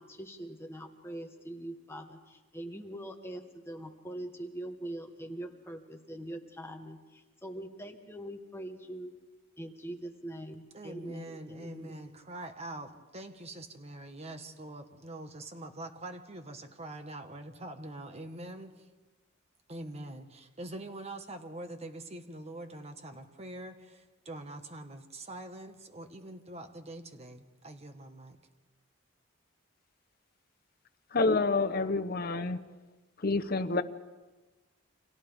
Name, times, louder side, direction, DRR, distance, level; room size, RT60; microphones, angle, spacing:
voice 1, 0.0-9.1 9.6-12.0, right 1 dB, 10° left, 4 dB, 1.3 m, -43 dB
voice 2, 10.7-18.7 19.7-28.4, right 1 dB, 30° right, 6 dB, 1.5 m, -44 dB
voice 3, 31.1-32.6 33.2-33.8, left 3 dB, 45° left, 8 dB, 0.9 m, -28 dB
30.0 x 25.5 x 3.6 m, 1.2 s
head